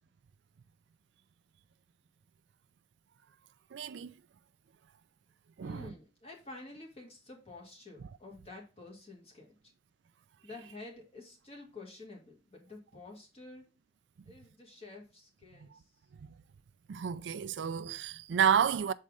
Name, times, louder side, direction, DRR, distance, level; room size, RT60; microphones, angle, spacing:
voice 1, 3.7-4.1 5.6-5.9 16.9-18.9, right 8 dB, 90° right, 0.4 m, -30 dB
voice 2, 5.6-9.6 10.4-13.6 14.3-15.9, left 2 dB, 35° left, 1.8 m, -50 dB
6.4 x 4.2 x 3.6 m
head